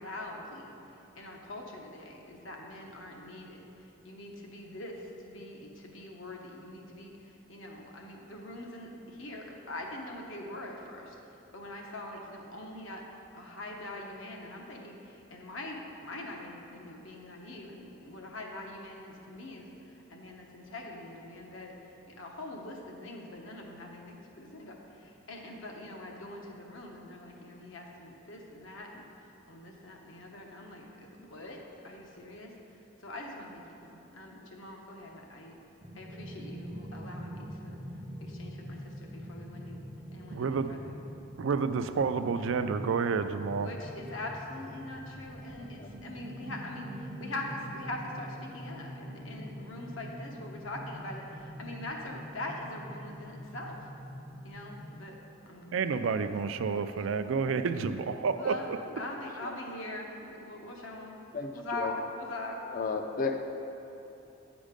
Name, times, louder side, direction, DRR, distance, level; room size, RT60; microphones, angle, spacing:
voice 1, 0.0-35.6 35.9-37.8 38.2-39.8 40.1-41.0 43.5-53.9 54.4-55.2 55.5-57.0 58.3-58.7 59.0-61.1 61.5-62.6, left 1 dB, 80° left, 0 dB, 1.0 m, -43 dB
sound 1, 35.8-55.0, equal, 25° right, 0.5 m, -44 dB
voice 2, 40.3-40.7 41.4-43.7 55.7-58.5, right 5 dB, 75° right, 10 dB, 0.4 m, -29 dB
voice 3, 62.7-63.4, left 4 dB, 40° left, 6 dB, 0.4 m, -32 dB
8.1 x 5.1 x 5.1 m, 3.0 s
head